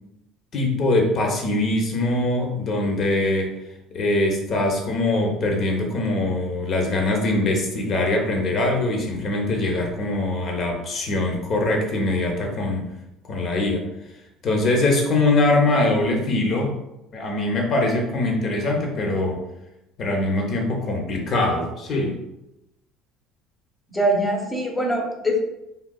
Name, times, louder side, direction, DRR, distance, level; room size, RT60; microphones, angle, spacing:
voice 1, 0.5-3.5 3.9-12.9 13.3-13.9 14.4-16.7 17.1-19.4 20.0-22.2, left 2 dB, 45° left, 2 dB, 0.7 m, -22 dB
voice 2, 23.9-25.4, equal, 10° left, 0 dB, 0.7 m, -23 dB
3.6 x 2.3 x 2.2 m, 0.90 s
supercardioid pair, 110°, 0 cm